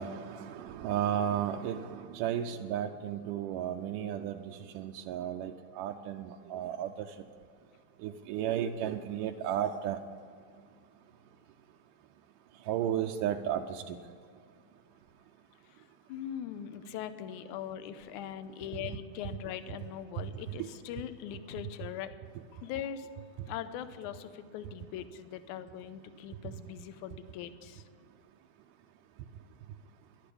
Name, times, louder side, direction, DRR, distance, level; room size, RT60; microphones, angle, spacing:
voice 1, 0.0-4.4 4.8-6.9 8.0-10.0 12.7-14.0 20.6-20.7, right 10 dB, 80° right, 4 dB, 1.9 m, -33 dB
voice 2, 15.7-22.2 22.5-27.8, left 9 dB, 75° left, 11 dB, 1.9 m, -41 dB
12.0 x 11.5 x 8.5 m, 2.2 s
omnidirectional pair, 4.2 m